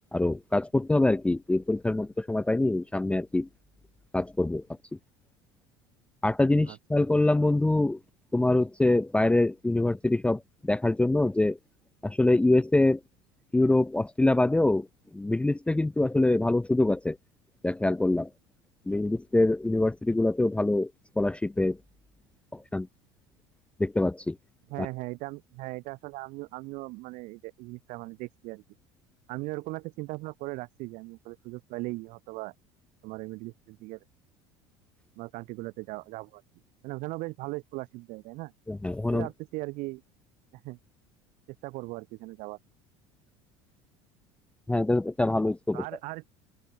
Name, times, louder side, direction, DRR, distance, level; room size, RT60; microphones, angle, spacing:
voice 1, 0.1-3.5 4.1-4.6 6.2-8.0 8.3-11.6 12.0-13.0 13.5-14.9 15.1-17.2 17.6-18.3 18.9-20.9 21.2-21.8 22.5-22.9 23.8-24.4 24.8-24.9 38.7-39.3 44.7-45.8, left 2 dB, 10° left, 0.5 m, -24 dB
voice 2, 6.7-7.1 24.7-28.6 29.3-32.5 33.0-34.0 35.2-36.4 36.8-38.5 39.1-40.0 40.6-40.8 41.5-42.6 45.7-46.3, right 22 dB, 65° right, 3.1 m, -38 dB
open air
hypercardioid pair, 80°, 14 cm